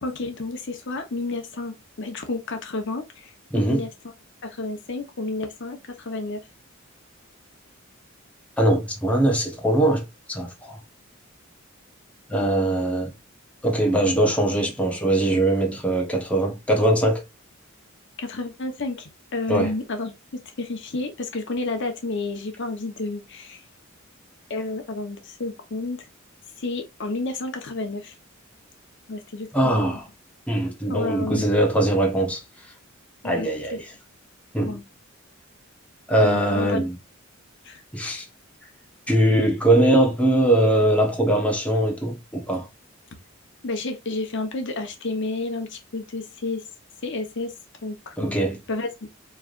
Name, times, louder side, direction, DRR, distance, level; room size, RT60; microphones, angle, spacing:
voice 1, 0.0-3.3 3.7-3.9 4.4-6.4 18.2-20.1 20.6-23.6 24.5-26.1 26.6-28.1 29.1-30.0 30.9-31.5 33.2-33.8 34.6-34.8 36.2-36.8 37.6-37.8 43.6-46.6 47.0-47.5 47.8-48.9, left 3 dB, 60° left, 1.0 m, -31 dB
voice 2, 3.5-3.8 8.6-10.0 10.3-10.8 12.3-13.1 13.6-17.2 19.5-19.7 29.5-30.0 30.5-32.4 33.2-33.9 34.5-34.8 36.1-36.9 37.9-38.2 39.1-42.7 48.2-48.6, right 1 dB, 5° left, 1.1 m, -21 dB
4.8 x 3.3 x 2.5 m
head